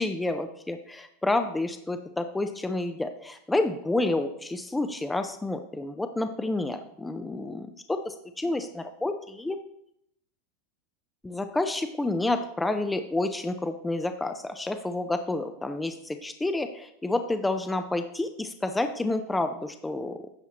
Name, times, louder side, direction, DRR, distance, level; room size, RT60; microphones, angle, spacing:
voice 1, 0.0-9.6 11.2-20.2, left 2 dB, 10° left, 8 dB, 0.6 m, -29 dB
10.5 x 6.9 x 3.0 m, 0.73 s
hypercardioid pair, 110°, 0 cm